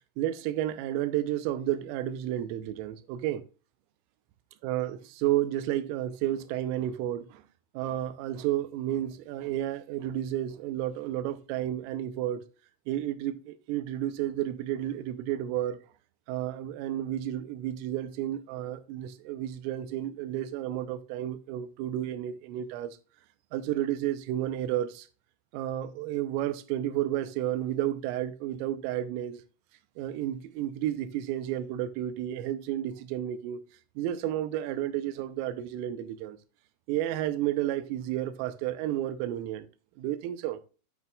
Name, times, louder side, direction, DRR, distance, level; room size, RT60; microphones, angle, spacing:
voice 1, 0.2-3.4 4.6-7.4 7.7-12.5 12.9-15.8 16.3-23.0 23.5-25.1 25.5-29.4 30.0-33.7 34.0-36.4 36.9-39.7 40.0-40.6, right 12 dB, 85° right, 3.4 m, -31 dB
9.0 x 8.3 x 2.3 m
omnidirectional pair, 5.8 m